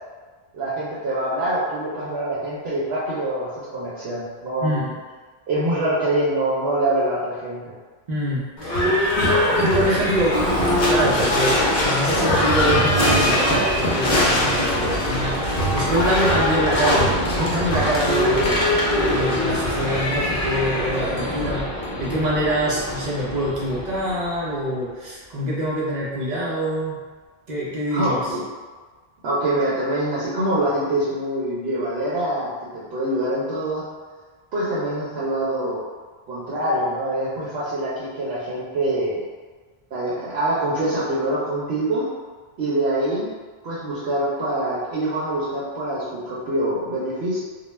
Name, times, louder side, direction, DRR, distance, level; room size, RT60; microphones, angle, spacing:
voice 1, 0.5-4.9 5.5-7.6 27.9-28.4 29.2-33.8 34.5-35.8 36.3-39.2 39.9-42.1 42.6-43.3 43.6-47.4, right 1 dB, 85° right, -8 dB, 0.9 m, -24 dB
voice 2, 8.1-10.4 10.9-18.6 19.1-27.0 27.5-28.3, equal, 50° right, -6 dB, 0.6 m, -25 dB
Livestock farm animals working animals / Bell, 8.6-24.5, left 1 dB, 60° left, 0.7 m, -22 dB
2.2 x 2.2 x 3.0 m, 1.5 s
omnidirectional pair, 1.0 m